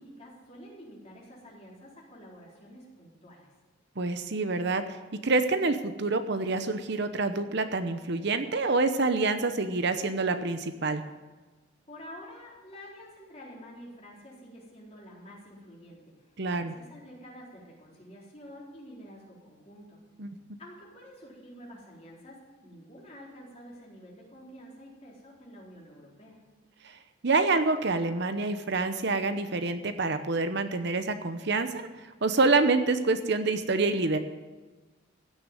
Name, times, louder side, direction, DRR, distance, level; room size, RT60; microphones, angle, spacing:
voice 1, 0.0-3.4 11.9-20.0 20.6-26.4, equal, 30° left, -4 dB, 4.1 m, -49 dB
voice 2, 4.0-5.0 5.2-11.0 16.4-16.7 20.2-20.4 26.8-27.0 27.2-34.2, right 3 dB, 55° right, 9 dB, 0.8 m, -27 dB
15.5 x 6.8 x 9.1 m, 1.2 s
head